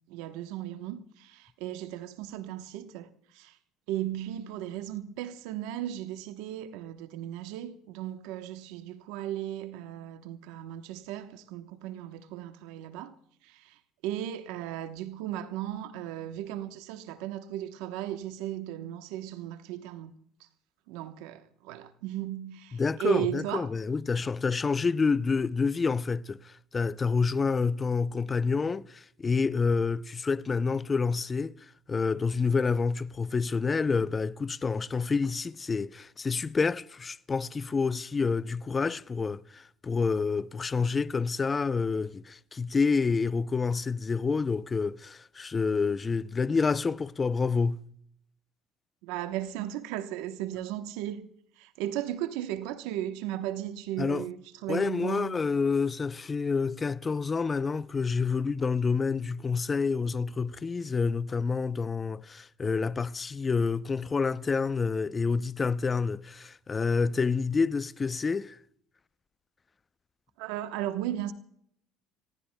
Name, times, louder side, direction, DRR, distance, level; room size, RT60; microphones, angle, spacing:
voice 1, 0.1-3.6 3.9-13.2 13.4-20.1 20.9-23.7 49.0-51.3 51.6-54.4 54.6-55.4 70.4-71.3, right 12 dB, 75° right, 1.0 m, -36 dB
voice 2, 22.7-31.5 31.9-47.8 54.0-54.3 54.7-68.6, left 4 dB, 30° left, 0.6 m, -28 dB
25.5 x 19.0 x 2.2 m
supercardioid pair, 80°, 0 cm